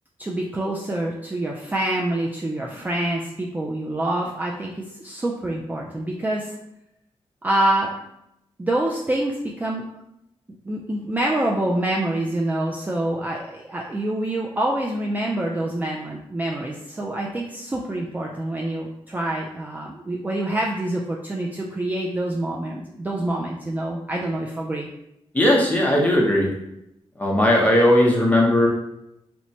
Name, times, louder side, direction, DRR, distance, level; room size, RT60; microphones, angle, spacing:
voice 1, 0.2-6.5 7.4-7.9 8.6-9.8 10.6-24.9, right 1 dB, 15° right, -2 dB, 0.3 m, -26 dB
voice 2, 25.3-26.5 27.2-28.7, left 1 dB, 15° left, -3 dB, 0.7 m, -17 dB
2.9 x 2.1 x 2.7 m, 0.82 s
cardioid pair, 85°, 11 cm